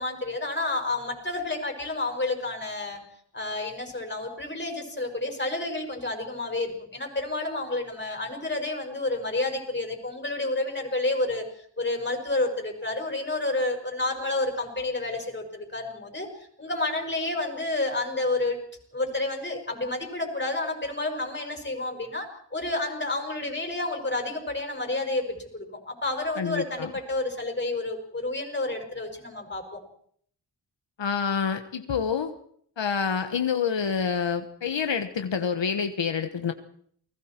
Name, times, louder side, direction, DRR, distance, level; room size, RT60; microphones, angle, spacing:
voice 1, 0.0-3.0 3.3-11.4 11.8-16.3 16.6-18.6 18.9-29.8, left 2 dB, 25° left, 3 dB, 5.6 m, -30 dB
voice 2, 26.4-26.9 31.0-32.3 32.8-36.5, left 6 dB, 85° left, 7 dB, 1.3 m, -27 dB
29.5 x 20.5 x 4.5 m, 0.62 s
wide cardioid pair, 85°, 43 cm